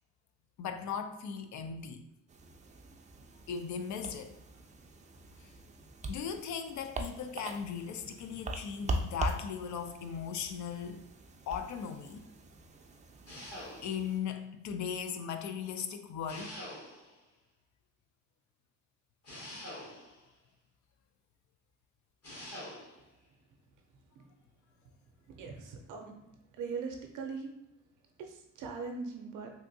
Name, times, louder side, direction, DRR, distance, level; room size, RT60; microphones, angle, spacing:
voice 1, 0.6-2.0 3.5-4.4 6.1-11.0 11.5-12.3 13.8-16.6, left 7 dB, 70° left, 7 dB, 0.4 m, -38 dB
sound 1, 2.3-14.2, right 2 dB, 25° right, 0.3 m, -42 dB
sound 2, 13.3-14.2 16.3-17.2 19.2-20.3 22.2-23.0, left 1 dB, 55° left, 1.5 m, -45 dB
voice 2, 25.3-26.1 26.5-27.5 28.2-29.5, right 5 dB, 85° right, 3 dB, 0.6 m, -40 dB
3.5 x 2.6 x 2.6 m, 0.88 s
cardioid pair, 90°, 30 cm